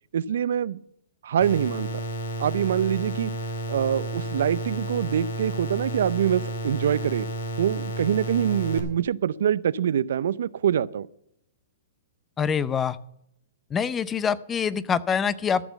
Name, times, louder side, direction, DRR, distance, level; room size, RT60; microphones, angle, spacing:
voice 1, 0.1-0.8 1.2-1.9 2.4-3.3 3.7-7.3 7.6-11.1, right 9 dB, 75° right, 18 dB, 0.5 m, -24 dB
sound 1, 1.4-8.8, right 2 dB, 80° left, 2.5 m, -32 dB
voice 2, 12.4-13.0 13.7-15.6, left 7 dB, 15° left, 18 dB, 0.5 m, -25 dB
14.0 x 6.1 x 8.1 m, 0.74 s
hypercardioid pair, 140°, 0 cm